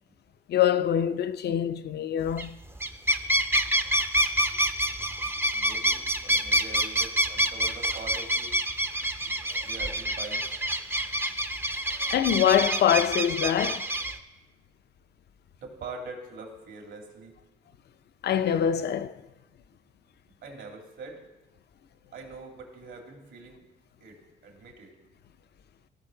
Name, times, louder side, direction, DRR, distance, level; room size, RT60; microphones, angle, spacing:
voice 1, 0.5-2.6 12.1-13.9 18.2-19.2, left 9 dB, 55° left, 0.5 m, -24 dB
sound 1, 2.3-2.5 2.8-14.2, right 1 dB, 10° right, 0.5 m, -27 dB
voice 2, 5.5-8.6 9.2-9.4 9.6-10.5 15.6-17.3 20.4-21.2 22.1-23.6 24.0-24.9, right 3 dB, 75° right, 2.4 m, -43 dB
16.5 x 5.6 x 3.8 m
cardioid pair, 90°, 20 cm